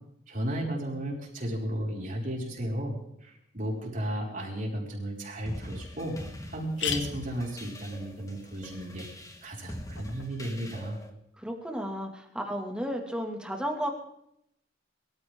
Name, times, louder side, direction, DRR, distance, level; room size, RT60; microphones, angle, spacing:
voice 1, 0.3-6.2 6.5-9.1 9.4-11.0, right 1 dB, 45° right, -2 dB, 5.2 m, -34 dB
sound 1, 5.2-5.3 5.8-5.9 6.1-6.2 6.5-10.3, left 7 dB, 70° left, 1.9 m, -40 dB
sound 2, 5.5-11.1, left 1 dB, 15° left, 1.8 m, -43 dB
voice 2, 11.4-13.9, equal, 5° right, 2 dB, 2.3 m, -33 dB
23.5 x 14.5 x 3.8 m, 0.74 s
head